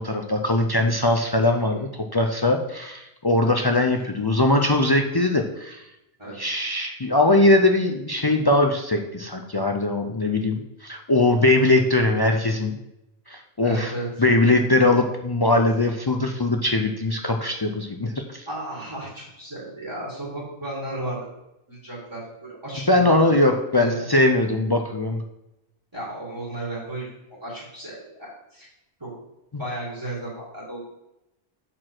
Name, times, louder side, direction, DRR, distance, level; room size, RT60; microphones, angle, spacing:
voice 1, 0.0-5.8 6.4-12.8 13.3-13.9 14.2-18.5 22.9-25.2, left 2 dB, 35° left, 4 dB, 0.4 m, -21 dB
voice 2, 1.4-1.8 6.2-6.3 13.6-14.1 15.5-15.6 18.5-21.3 21.7-23.3 23.8-24.1 25.9-28.7 29.0-29.1 29.6-30.8, right 1 dB, 25° right, -6 dB, 2.1 m, -34 dB
6.4 x 4.5 x 6.0 m, 0.89 s
omnidirectional pair, 1.1 m